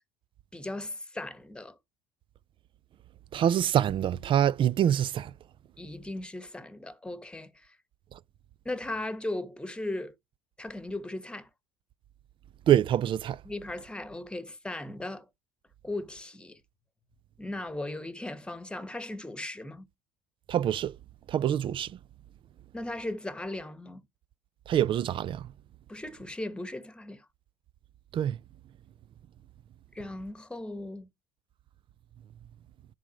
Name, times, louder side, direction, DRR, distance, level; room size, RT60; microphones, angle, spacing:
voice 1, 0.5-1.8 5.8-7.7 8.6-10.1 10.6-11.5 13.4-15.3 15.8-16.6 17.4-19.9 22.7-24.0 25.9-27.2 29.9-31.1, left 2 dB, 5° left, 1.2 m, -37 dB
voice 2, 3.3-5.3 12.7-13.4 20.5-20.9 21.3-21.9 24.7-25.5 28.1-28.4, right 10 dB, 40° right, 0.4 m, -25 dB
10.5 x 3.9 x 6.3 m
supercardioid pair, 100°, 13 cm